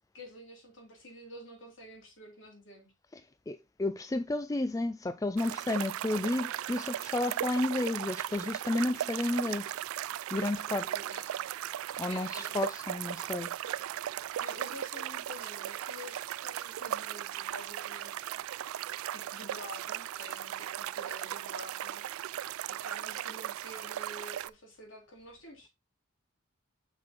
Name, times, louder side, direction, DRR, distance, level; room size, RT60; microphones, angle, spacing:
voice 1, 0.1-2.9 10.7-11.5 12.1-12.6 14.4-18.4 19.1-22.1 22.7-25.7, left 1 dB, 65° left, 3.2 m, -49 dB
voice 2, 3.5-9.8 10.3-10.9 12.0-13.5, left 2 dB, 15° left, 0.3 m, -32 dB
sound 1, 5.4-24.5, right 11 dB, 90° right, 0.3 m, -37 dB
6.1 x 6.0 x 3.7 m
head